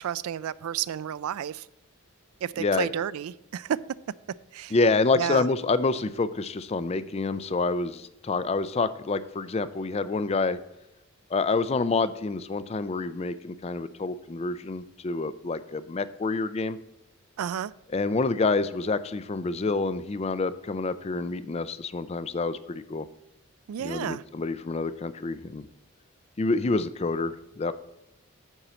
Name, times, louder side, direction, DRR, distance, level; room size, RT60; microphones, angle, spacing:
voice 1, 0.0-1.7 2.4-3.8 4.5-4.7 5.1-5.5 17.4-17.7 23.7-24.2, right 9 dB, 80° right, 0.3 m, -31 dB
voice 2, 2.6-2.9 4.7-10.6 11.3-16.8 17.9-23.1 23.8-25.7 26.4-27.7, left 3 dB, 30° left, 0.4 m, -27 dB
9.1 x 4.3 x 6.8 m
head